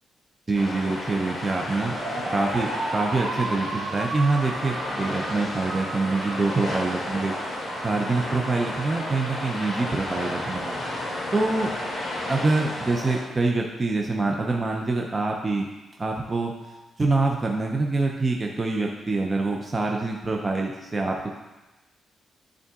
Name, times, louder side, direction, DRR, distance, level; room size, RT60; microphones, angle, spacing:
sound 1, 0.5-13.2, left 1 dB, 40° left, 2.1 m, -32 dB
voice 1, 0.5-2.0 2.3-7.3 7.8-10.8 11.3-11.7 12.3-15.7 16.0-16.5 17.0-21.4, right 3 dB, 20° right, 1 dB, 0.5 m, -25 dB
sound 2, 1.9-11.2, right 2 dB, 70° right, 1.2 m, -36 dB
10.5 x 3.7 x 3.6 m, 1.1 s
wide cardioid pair, 175°, 0 cm